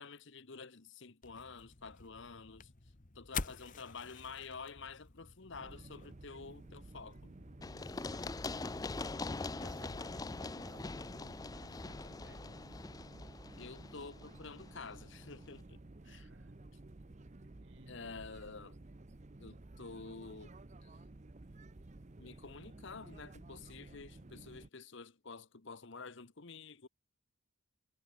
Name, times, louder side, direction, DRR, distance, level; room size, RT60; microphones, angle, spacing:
voice 1, 0.0-2.7 3.1-7.3 13.6-16.3 17.9-18.8 19.4-20.5 20.8-20.9 22.2-26.9, left 4 dB, 55° left, 1.0 m, -49 dB
Match Strike, 1.2-8.0, left 5 dB, 35° left, 1.2 m, -48 dB
sound 1, 5.5-24.7, right 2 dB, 35° right, 0.7 m, -54 dB
Run, 7.6-15.3, left 3 dB, 15° left, 0.4 m, -43 dB
voice 2, 8.0-12.5 16.0-16.9 17.6-18.1, right 2 dB, 60° right, 3.7 m, -62 dB
head